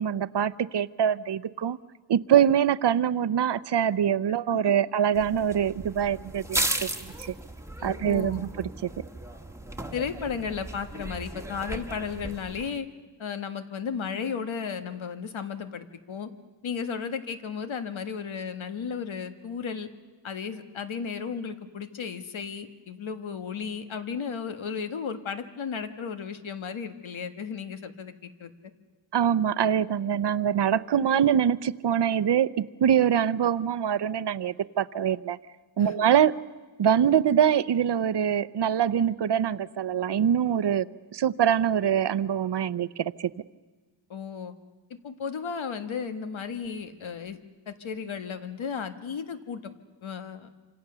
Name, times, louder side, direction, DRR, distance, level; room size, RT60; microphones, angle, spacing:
voice 1, 0.0-1.8 2.1-6.9 7.3-7.4 7.8-8.9 29.1-35.4 35.8-36.3 36.8-40.9 41.1-43.3, right 9 dB, 65° right, 16 dB, 0.7 m, -24 dB
sound 1, 5.1-12.7, right 1 dB, 5° right, 1.3 m, -35 dB
voice 2, 7.8-8.4 9.9-12.9 13.2-16.3 16.6-19.9 20.2-28.5 35.8-35.9 44.1-44.5 45.0-47.4 47.7-49.7 50.0-50.5, left 6 dB, 90° left, 8 dB, 1.6 m, -34 dB
26.5 x 26.5 x 6.9 m, 1.3 s
wide cardioid pair, 140°, 46 cm